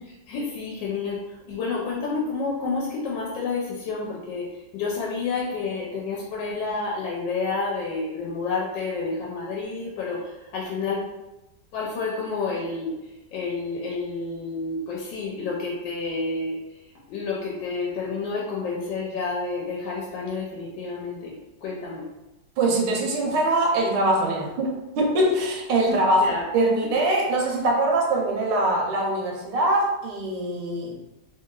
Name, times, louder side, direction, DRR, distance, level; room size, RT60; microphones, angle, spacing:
voice 1, 0.3-11.0 11.7-16.6 17.1-21.3 21.6-22.1 25.9-26.4, left 4 dB, 85° left, -3 dB, 1.3 m, -29 dB
voice 2, 22.6-31.0, right 1 dB, 85° right, 0 dB, 1.3 m, -23 dB
3.1 x 2.8 x 2.3 m, 1.0 s
omnidirectional pair, 2.0 m